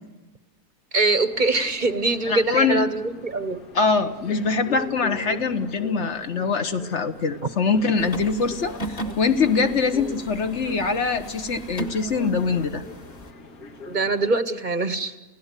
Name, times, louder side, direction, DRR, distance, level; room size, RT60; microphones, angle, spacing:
voice 1, 0.9-3.6 13.9-15.1, right 3 dB, 35° right, 11 dB, 1.0 m, -23 dB
sound 1, 1.1-14.4, left 3 dB, 75° left, 2.2 m, -42 dB
voice 2, 2.3-2.8 3.7-12.8, left 4 dB, 50° left, 8 dB, 1.5 m, -23 dB
sound 2, 8.0-13.3, right 2 dB, 25° left, 1.8 m, -37 dB
29.5 x 17.0 x 8.3 m, 1.1 s
omnidirectional pair, 1.6 m